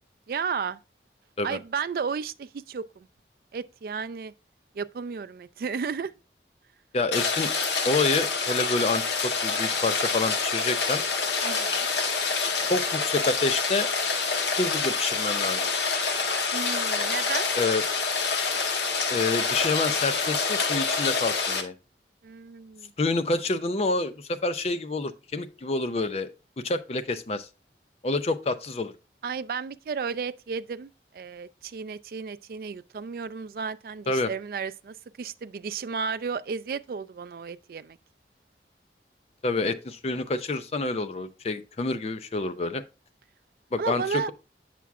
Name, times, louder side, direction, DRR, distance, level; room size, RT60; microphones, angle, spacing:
voice 1, 0.3-0.8 1.4-3.1 3.5-4.3 4.7-6.1 11.4-11.9 16.5-17.5 22.2-22.9 29.2-38.0 43.8-44.3, right 5 dB, 55° right, 0.3 m, -33 dB
voice 2, 6.9-7.5 7.8-11.0 12.6-13.9 14.6-15.7 17.6-17.8 19.1-21.7 23.0-26.3 26.6-27.5 28.0-28.9 34.1-34.3 39.4-42.8 43.7-44.3, left 3 dB, 35° left, 0.4 m, -28 dB
Rain, 7.1-21.6, left 4 dB, 80° left, 0.9 m, -27 dB
8.2 x 5.9 x 2.3 m
head